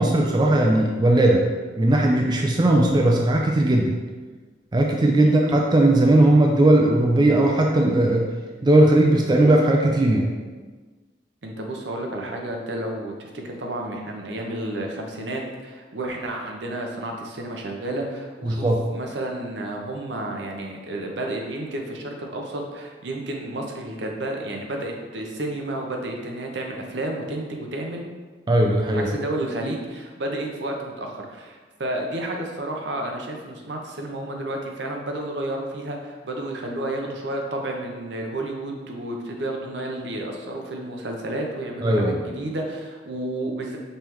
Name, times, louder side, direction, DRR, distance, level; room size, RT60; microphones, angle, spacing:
voice 1, 0.0-1.4 1.8-3.9 4.7-8.3 8.6-10.3 18.5-18.8 28.5-29.1 41.8-42.2, right 1 dB, 25° right, 0 dB, 0.4 m, -18 dB
voice 2, 11.4-28.0 28.9-43.8, right 1 dB, 70° right, 1 dB, 0.7 m, -31 dB
5.4 x 3.2 x 3.0 m, 1.4 s
head